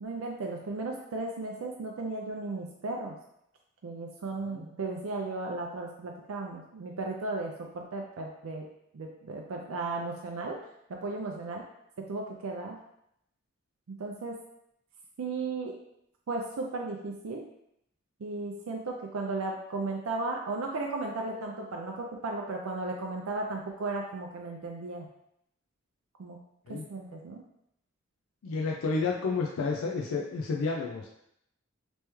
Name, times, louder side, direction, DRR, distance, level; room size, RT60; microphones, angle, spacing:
voice 1, 0.0-3.2 3.8-8.6 8.9-10.6 10.9-11.6 12.0-12.8 13.9-14.4 15.2-15.7 16.3-17.4 18.2-25.1 26.2-26.4 26.7-27.4, right 3 dB, 80° right, 0 dB, 0.4 m, -35 dB
voice 2, 28.4-31.1, left 4 dB, 80° left, 0 dB, 0.4 m, -30 dB
3.4 x 3.1 x 3.0 m, 0.77 s
head